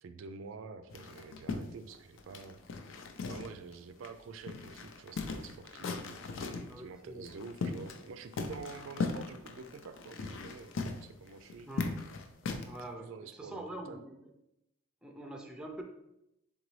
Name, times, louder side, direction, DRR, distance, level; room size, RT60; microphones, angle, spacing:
voice 1, 0.0-2.6 3.3-10.7 11.0-11.7 13.0-14.0, right 5 dB, 75° right, 10 dB, 0.3 m, -48 dB
sound 1, 0.9-3.7 4.0-4.1 4.5-6.7 7.3-8.1 8.3-12.8, left 4 dB, 70° left, 0.4 m, -38 dB
voice 2, 6.7-7.3 11.7-11.9 12.7-14.3 15.0-15.8, right 1 dB, 5° right, 3 dB, 0.4 m, -44 dB
3.9 x 3.7 x 3.1 m, 0.86 s
head